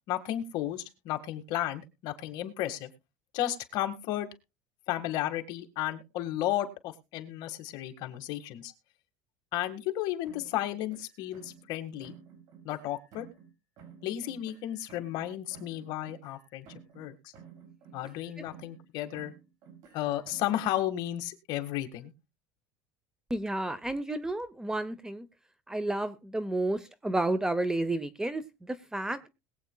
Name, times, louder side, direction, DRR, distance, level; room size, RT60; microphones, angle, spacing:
voice 1, 0.1-2.9 3.3-4.3 4.9-8.7 9.5-12.2 12.6-13.3 14.0-16.7 16.9-17.2 17.9-19.3 19.9-22.1, left 13 dB, 55° left, 7 dB, 1.7 m, -33 dB
sound 1, 10.2-11.7 12.0-13.5 13.8-17.1 17.3-18.8 19.1-20.6, right 7 dB, 50° right, 5.6 m, -53 dB
voice 2, 23.3-25.3 25.7-29.3, right 2 dB, 5° right, 13 dB, 0.7 m, -31 dB
21.0 x 8.4 x 2.3 m, 0.27 s
cardioid pair, 155°, 9 cm